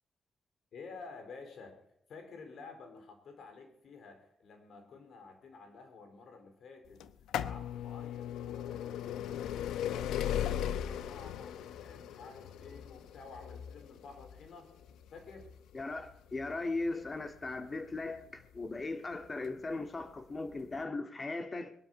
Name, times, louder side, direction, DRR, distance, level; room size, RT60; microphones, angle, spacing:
voice 1, 0.7-1.8 2.1-7.0 7.3-14.7 15.1-15.5, left 4 dB, 70° left, 4.2 m, -51 dB
sound 1, 7.0-18.7 19.5-19.6 20.5-20.6 20.8-20.9, left 10 dB, 85° left, 0.7 m, -38 dB
voice 2, 15.7-21.7, left 3 dB, 35° left, 1.9 m, -38 dB
21.0 x 12.0 x 5.5 m
supercardioid pair, 55°, 0 cm